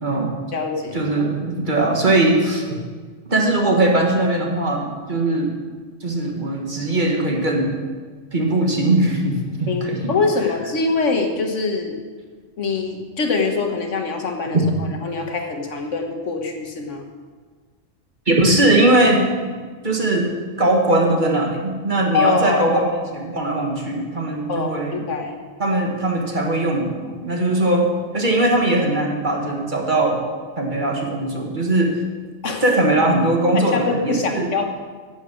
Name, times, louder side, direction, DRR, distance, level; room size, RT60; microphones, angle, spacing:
voice 1, 0.0-0.3 0.9-2.8 3.3-5.6 6.0-7.7 8.3-10.1 14.5-14.7 18.3-19.3 19.8-20.3 20.6-22.8 23.1-25.0 25.6-30.2 30.6-32.0 32.6-34.5, right 2 dB, 40° right, 0 dB, 1.7 m, -20 dB
voice 2, 0.5-1.1 9.7-12.0 12.6-14.6 15.0-17.0 22.1-22.8 24.5-25.4 32.4-32.6 33.5-34.6, left 4 dB, 70° left, 4 dB, 1.5 m, -23 dB
10.5 x 8.3 x 6.2 m, 1.5 s
omnidirectional pair, 1.3 m